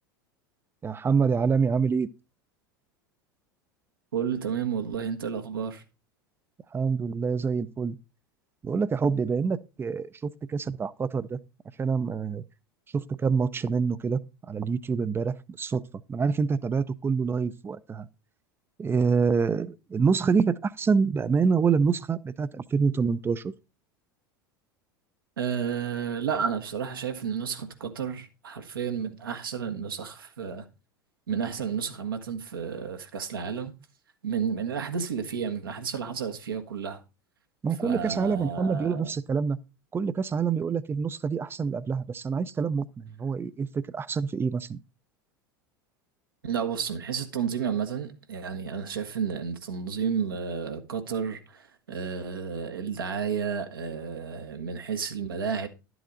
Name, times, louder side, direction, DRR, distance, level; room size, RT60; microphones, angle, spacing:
voice 1, 0.8-2.1 6.7-8.0 8.6-11.4 11.8-12.4 12.9-14.2 14.5-15.8 16.1-18.1 18.8-23.5 37.6-39.6 39.9-44.8, right 5 dB, 20° right, 0.6 m, -26 dB
voice 2, 4.1-5.8 25.4-30.7 31.3-33.7 34.2-37.0 37.8-39.1 46.4-55.7, right 7 dB, 80° right, 1.4 m, -31 dB
11.5 x 7.8 x 3.9 m
figure-of-eight pair, 80°, 12 cm